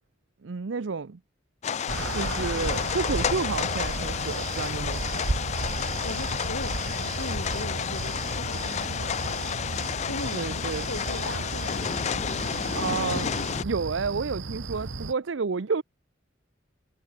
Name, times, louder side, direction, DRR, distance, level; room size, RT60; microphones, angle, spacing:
voice 1, 0.4-1.2 2.1-5.2 10.3-10.9 12.7-13.3 13.6-15.8, right 4 dB, 75° right, 0.6 m, -30 dB
sound 1, 1.6-13.6, left 7 dB, 35° left, 0.4 m, -31 dB
sound 2, 1.9-15.1, right 2 dB, 90° right, 1.3 m, -34 dB
voice 2, 2.2-2.5 6.0-9.7 10.1-12.9, left 2 dB, 75° left, 4.6 m, -40 dB
head